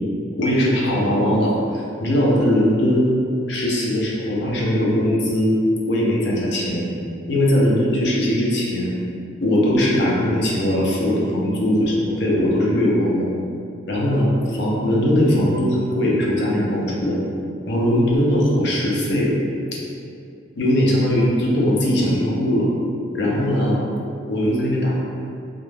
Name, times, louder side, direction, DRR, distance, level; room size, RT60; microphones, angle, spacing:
voice 1, 0.4-3.2 3.5-5.5 5.9-6.9 7.3-8.9 9.4-13.2 13.9-17.2 17.7-19.3 19.7-19.8 20.6-22.7 23.1-23.8 24.2-24.9, equal, 60° left, -4 dB, 0.5 m, -20 dB
2.3 x 2.1 x 3.2 m, 2.4 s
head